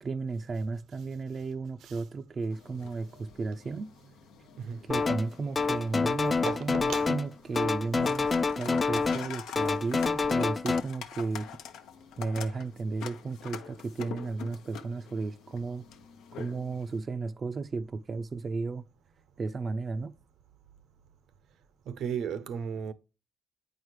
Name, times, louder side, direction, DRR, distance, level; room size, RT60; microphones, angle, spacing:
voice 1, 0.0-3.9 4.8-8.3 8.6-11.5 12.2-15.8 16.3-18.8 19.4-20.1, right 4 dB, 40° right, 0.4 m, -34 dB
sound 1, 2.5-17.0, left 8 dB, 90° left, 0.7 m, -46 dB
sound 2, 4.9-5.3 5.5-7.3 7.5-9.3 9.6-10.8, left 4 dB, 30° left, 0.4 m, -27 dB
voice 2, 6.5-7.1 21.9-22.9, right 7 dB, 75° right, 0.7 m, -35 dB
8.7 x 4.8 x 3.0 m
cardioid pair, 90°, 0 cm